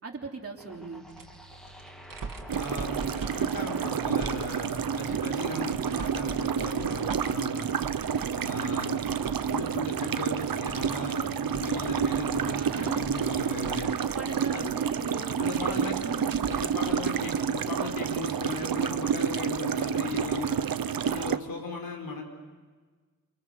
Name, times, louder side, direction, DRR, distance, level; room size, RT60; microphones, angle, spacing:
voice 1, 0.0-1.1 12.3-13.0 13.8-16.5, right 4 dB, 40° right, -1 dB, 3.2 m, -38 dB
sound 1, 0.6-13.6, equal, ahead, 2.8 m, -48 dB
sound 2, 1.1-9.6 9.9-16.9 17.3-17.4 18.6-18.7, right 4 dB, 70° right, 2.7 m, -43 dB
voice 2, 2.5-7.7 8.3-9.0 9.5-13.9 14.5-14.7 15.2-16.0 16.5-20.7 21.0-22.2, left 3 dB, 90° left, 3 dB, 5.3 m, -37 dB
sound 3, 2.5-21.4, right 7 dB, 85° right, 0.9 m, -29 dB
28.5 x 27.5 x 6.7 m, 1.4 s
wide cardioid pair, 155°, 34 cm